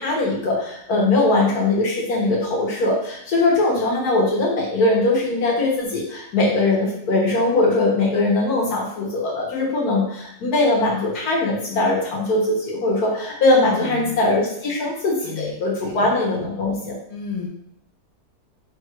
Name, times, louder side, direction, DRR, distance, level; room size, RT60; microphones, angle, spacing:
voice 1, 0.0-17.0, left 2 dB, 70° left, -4 dB, 1.7 m, -21 dB
voice 2, 13.7-14.2 15.2-16.1 17.1-17.5, left 6 dB, 45° left, -1 dB, 0.5 m, -33 dB
3.4 x 2.5 x 4.4 m, 0.72 s
omnidirectional pair, 1.8 m